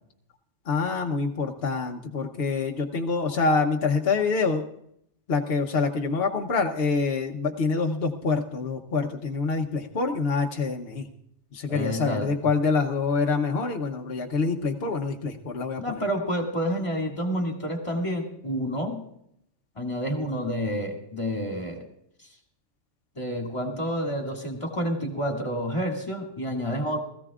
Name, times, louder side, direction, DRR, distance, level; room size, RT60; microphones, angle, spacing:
voice 1, 0.7-4.6 5.3-11.1 11.5-16.0, left 4 dB, 55° left, 2 dB, 1.1 m, -26 dB
voice 2, 11.7-12.3 15.8-19.0 19.8-21.8 23.2-27.0, equal, 25° left, 2 dB, 2.1 m, -29 dB
20.5 x 14.5 x 2.4 m, 0.74 s
omnidirectional pair, 1.2 m